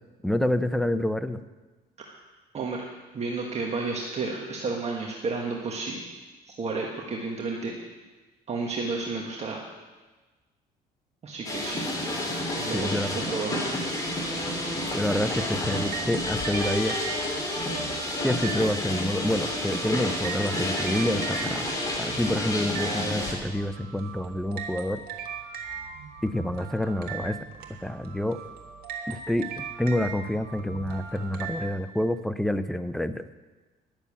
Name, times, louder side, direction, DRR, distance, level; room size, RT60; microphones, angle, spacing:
voice 1, 0.2-1.4 12.7-13.2 14.9-17.0 18.2-21.7 22.0-25.0 26.2-27.4 27.8-28.4 29.1-29.5 29.8-33.3, left 1 dB, ahead, 12 dB, 0.5 m, -28 dB
voice 2, 2.5-2.9 3.1-6.0 6.5-7.7 8.5-9.6 11.2-11.8 12.6-13.6, right 3 dB, 40° right, -1 dB, 1.5 m, -31 dB
sound 1, 11.4-23.3, left 1 dB, 20° left, 2.9 m, -30 dB
sound 2, 14.4-31.7, right 6 dB, 65° right, 1.6 m, -40 dB
11.0 x 7.0 x 8.4 m, 1.2 s
cardioid pair, 110°, 17 cm